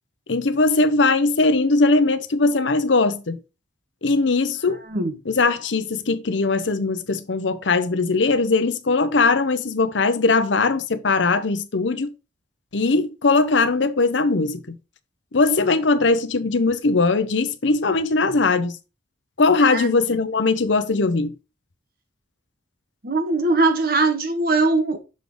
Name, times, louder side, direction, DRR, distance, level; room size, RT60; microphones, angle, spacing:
voice 1, 0.3-3.4 4.0-4.8 5.2-12.1 12.7-14.8 15.3-18.8 19.4-21.4, left 3 dB, 80° left, 0.8 m, -20 dB
voice 2, 23.0-25.0, right 3 dB, 55° right, 1.2 m, -20 dB
6.5 x 3.9 x 5.0 m
head